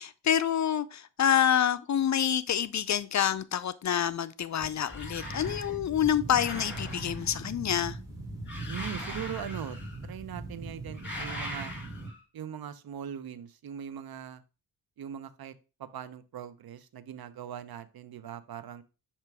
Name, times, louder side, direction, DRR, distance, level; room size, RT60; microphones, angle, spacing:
voice 1, 0.0-8.0, left 9 dB, 45° left, 0.4 m, -27 dB
sound 1, 4.6-12.1, right 2 dB, 5° right, 2.5 m, -40 dB
sound 2, 4.8-5.7 6.3-7.4 8.5-10.1 10.9-12.2, left 1 dB, 25° left, 2.4 m, -41 dB
voice 2, 8.7-11.7 12.3-14.4 15.0-15.5 15.8-18.8, right 9 dB, 60° right, 0.7 m, -41 dB
6.7 x 3.0 x 4.7 m
cardioid pair, 60°, 43 cm